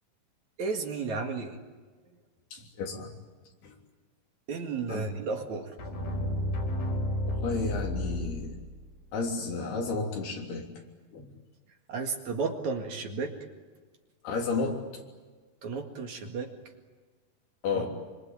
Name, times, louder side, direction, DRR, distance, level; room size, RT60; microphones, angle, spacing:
voice 1, 0.6-1.6 4.5-5.7 11.9-13.3 15.6-16.5 17.7-17.8, right 4 dB, 55° right, 4 dB, 3.1 m, -33 dB
voice 2, 2.5-3.1 3.6-3.8 4.9-5.1 7.3-8.6 9.1-10.7 11.1-11.3 14.2-15.0 17.6-17.9, left 4 dB, 85° left, 1 dB, 5.4 m, -32 dB
sound 1, 5.8-8.9, equal, 65° left, 6.3 m, -32 dB
26.0 x 25.0 x 8.9 m, 1.4 s
omnidirectional pair, 4.4 m